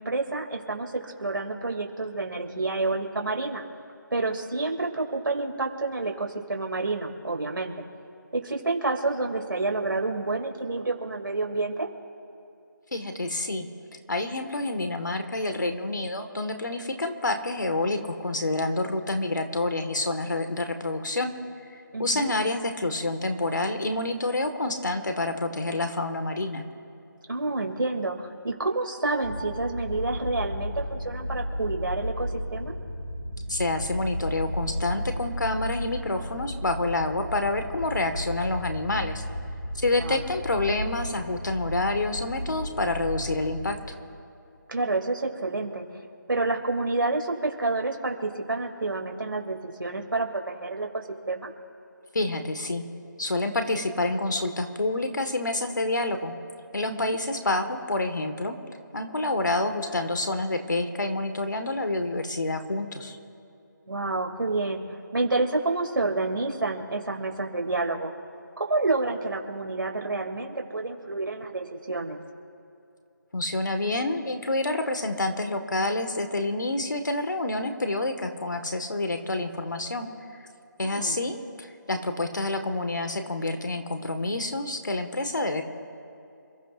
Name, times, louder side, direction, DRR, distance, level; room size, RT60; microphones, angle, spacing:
voice 1, 0.0-3.6 4.1-7.7 8.3-11.9 21.9-22.3 27.3-32.7 39.9-40.2 44.7-45.8 46.3-51.5 56.8-57.1 63.9-64.8 65.1-68.1 68.6-72.2 80.8-81.2, right 3 dB, 80° right, 1 dB, 2.6 m, -29 dB
voice 2, 12.9-13.7 14.1-21.3 22.0-26.6 33.5-39.2 39.7-43.8 52.1-52.8 53.2-56.3 56.7-58.5 58.9-63.2 73.3-80.4 80.8-85.6, left 2 dB, 65° left, 7 dB, 1.6 m, -28 dB
sound 1, 29.2-43.8, equal, 25° left, 3.1 m, -34 dB
28.0 x 14.5 x 2.5 m, 2.6 s
figure-of-eight pair, 180°, 11 cm